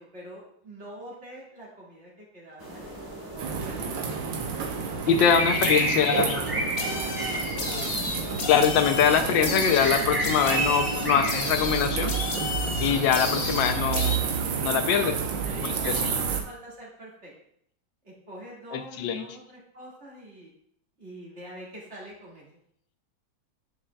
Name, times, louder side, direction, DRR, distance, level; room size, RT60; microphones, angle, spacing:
voice 1, 0.0-4.2 4.9-7.6 14.9-17.3 18.0-20.5 21.0-22.5, right 1 dB, 35° right, -5 dB, 2.2 m, -45 dB
sound 1, 2.6-11.3, right 1 dB, 15° right, 0.9 m, -32 dB
sound 2, 3.4-16.4, right 6 dB, 80° right, 1.5 m, -30 dB
voice 2, 5.1-6.4 8.5-12.1 12.8-14.2 14.6-15.1 15.6-16.2 18.7-19.2, left 7 dB, 80° left, 8 dB, 1.3 m, -23 dB
sound 3, 6.8-14.2, left 3 dB, 60° left, 0.5 m, -32 dB
10.0 x 5.1 x 2.3 m, 0.69 s
omnidirectional pair, 2.1 m